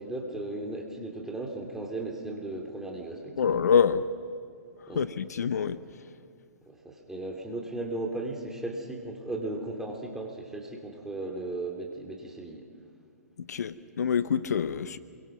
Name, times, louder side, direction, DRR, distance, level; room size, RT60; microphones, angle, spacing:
voice 1, 0.0-3.6 4.9-5.1 6.6-12.7, right 2 dB, 5° right, 3.2 m, -36 dB
voice 2, 3.4-4.0 4.9-5.8 13.5-15.0, left 7 dB, 75° left, 0.8 m, -26 dB
27.5 x 23.0 x 6.1 m
hypercardioid pair, 130°, 9 cm